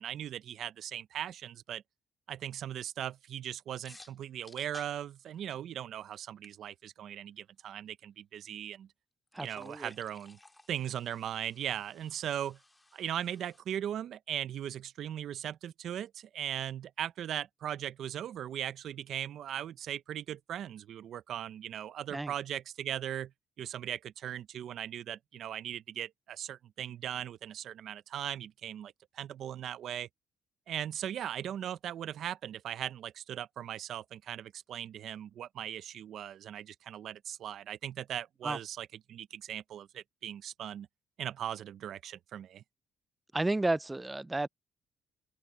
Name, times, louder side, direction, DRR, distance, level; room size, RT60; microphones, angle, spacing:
voice 1, 0.0-1.8 2.3-8.9 9.4-10.4 10.7-12.6 12.9-23.3 23.6-30.1 30.7-40.9 41.2-42.6, right 10 dB, 70° right, 0.6 m, -39 dB
sound 1, 3.8-5.8 6.1-6.2 6.4-6.5 9.3-13.6, left 2 dB, 15° left, 2.1 m, -57 dB
voice 2, 9.3-9.9 22.1-22.3 38.4-38.6 43.3-44.5, right 2 dB, 15° right, 0.4 m, -32 dB
open air
cardioid pair, 90°, 0 cm